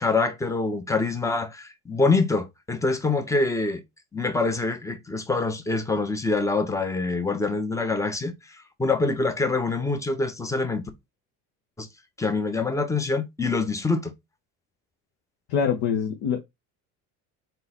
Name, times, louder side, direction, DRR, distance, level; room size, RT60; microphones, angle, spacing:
voice 1, 0.0-3.8 4.1-8.3 8.8-10.8 11.8-11.9 12.2-14.1, left 3 dB, 5° left, 0.8 m, -25 dB
voice 2, 15.5-16.4, left 7 dB, 65° left, 1.0 m, -24 dB
3.8 x 2.6 x 4.2 m
supercardioid pair, 80°, 43 cm